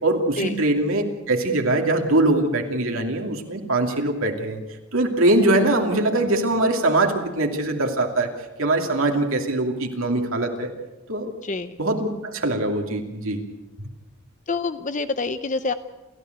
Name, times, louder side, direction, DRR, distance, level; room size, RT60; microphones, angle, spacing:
voice 1, 0.0-4.6 4.9-8.3 8.6-10.7 11.1-11.3 11.8-13.4, right 2 dB, 70° right, 2 dB, 2.7 m, -22 dB
voice 2, 11.4-11.8 14.5-15.7, left 3 dB, 35° left, 11 dB, 0.6 m, -26 dB
29.0 x 14.5 x 8.1 m, 1.1 s
head